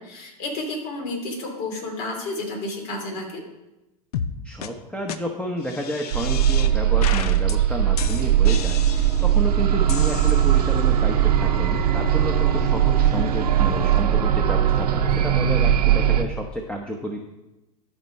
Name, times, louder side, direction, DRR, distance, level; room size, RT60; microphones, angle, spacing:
voice 1, 0.0-3.4, left 2 dB, 55° left, 1 dB, 2.8 m, -31 dB
sound 1, 4.1-4.3 4.6-4.7 5.1-5.2 5.6-6.7 7.0-7.6 8.0-9.4 9.9-10.8, left 8 dB, 75° left, 0.7 m, -33 dB
voice 2, 4.4-17.2, equal, 5° left, 1 dB, 1.0 m, -31 dB
sound 2, 6.1-16.2, right 10 dB, 90° right, 0.8 m, -20 dB
sound 3, 8.0-14.0, right 9 dB, 35° right, 0.7 m, -34 dB
12.5 x 4.5 x 5.5 m, 0.99 s
hypercardioid pair, 100°, 20 cm